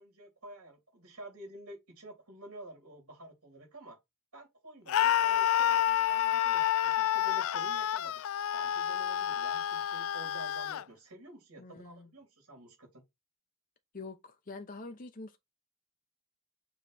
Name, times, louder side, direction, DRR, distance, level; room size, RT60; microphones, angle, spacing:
voice 1, 0.0-4.0 4.3-8.2 8.5-13.0, right 1 dB, 85° right, 3.5 m, -50 dB
Screaming, 4.9-10.8, left 11 dB, 70° left, 0.3 m, -29 dB
voice 2, 11.6-12.1 13.9-15.4, left 3 dB, 40° left, 0.7 m, -45 dB
7.1 x 3.1 x 4.2 m
head